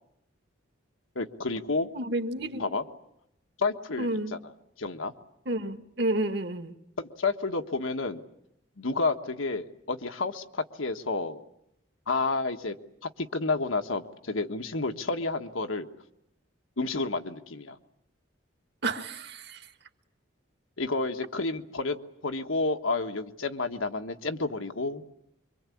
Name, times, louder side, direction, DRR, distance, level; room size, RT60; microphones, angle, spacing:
voice 1, 1.1-1.9 2.6-2.8 3.6-4.4 4.8-5.1 7.0-8.2 8.8-11.4 12.1-12.8 13.0-15.9 16.8-17.8 20.8-22.0 22.2-25.0, left 3 dB, 90° left, 6 dB, 1.5 m, -30 dB
voice 2, 1.9-2.6 4.0-4.4 5.4-6.7 18.8-19.7, right 2 dB, 55° right, 8 dB, 1.7 m, -30 dB
26.0 x 24.0 x 8.6 m, 0.78 s
head